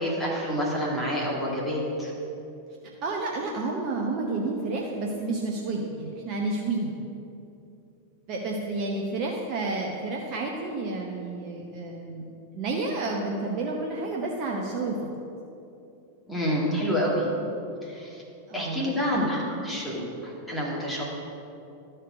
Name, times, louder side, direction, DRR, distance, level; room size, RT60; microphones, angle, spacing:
voice 1, 0.0-2.1 16.3-17.3 17.8-18.2 18.5-21.0, equal, ahead, -6 dB, 2.2 m, -28 dB
voice 2, 3.0-7.0 8.3-12.2 12.5-15.0 18.5-19.0, right 3 dB, 40° right, -1 dB, 0.8 m, -30 dB
12.0 x 4.5 x 5.0 m, 2.7 s
figure-of-eight pair, 90°, 0 cm